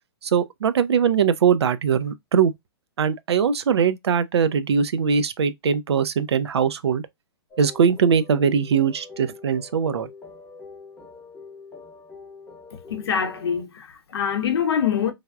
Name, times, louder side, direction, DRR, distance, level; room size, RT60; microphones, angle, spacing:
voice 1, 0.2-2.5 3.0-7.0 7.6-10.1, right 7 dB, 75° right, 0.4 m, -21 dB
sound 1, 7.5-13.6, left 4 dB, 10° left, 0.8 m, -44 dB
voice 2, 12.9-15.1, left 8 dB, 70° left, 0.6 m, -24 dB
3.3 x 2.3 x 2.3 m
hypercardioid pair, 120°, 14 cm